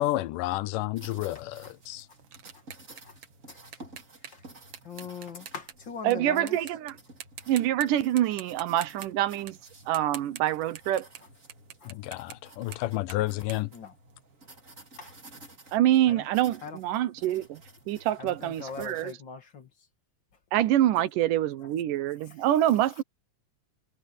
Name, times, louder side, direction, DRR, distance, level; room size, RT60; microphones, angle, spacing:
voice 1, 0.0-2.1 11.9-13.7, left 16 dB, 85° left, 2.3 m, -30 dB
sound 1, 1.0-19.1, right 2 dB, 25° right, 3.5 m, -53 dB
sound 2, 1.3-6.2 6.5-6.9 7.2-7.9 8.2-14.5, right 9 dB, 55° right, 2.1 m, -46 dB
voice 2, 4.8-6.6 11.8-11.9 12.6-12.8 13.7-13.9 15.0-15.1 16.1-16.2 16.6-16.8 18.2-19.7, left 6 dB, 40° left, 2.3 m, -41 dB
voice 3, 6.0-7.0 7.5-9.6 9.9-11.1 15.7-19.1 20.5-23.0, right 12 dB, 85° right, 2.6 m, -26 dB
omnidirectional pair, 3.7 m